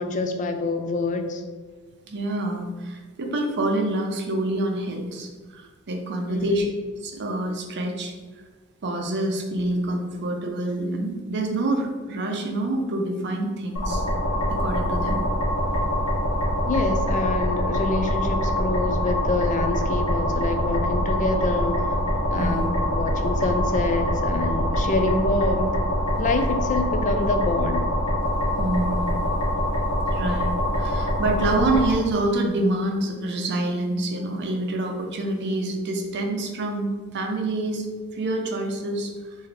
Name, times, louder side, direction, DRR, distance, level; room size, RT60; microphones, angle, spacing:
voice 1, 0.0-1.4 6.3-6.6 16.7-22.0 22.3-25.8 26.2-27.9, left 3 dB, 35° left, 6 dB, 0.4 m, -26 dB
voice 2, 2.1-6.7 7.0-8.1 8.8-14.0 14.5-15.2 22.3-22.7 28.6-29.3 30.1-37.9 38.1-39.4, right 1 dB, 50° right, 3 dB, 0.6 m, -27 dB
sound 1, 13.8-31.9, left 1 dB, 75° left, 1.2 m, -24 dB
sound 2, 15.6-25.8, equal, 55° left, 1.3 m, -36 dB
3.8 x 2.7 x 3.4 m, 1.4 s
head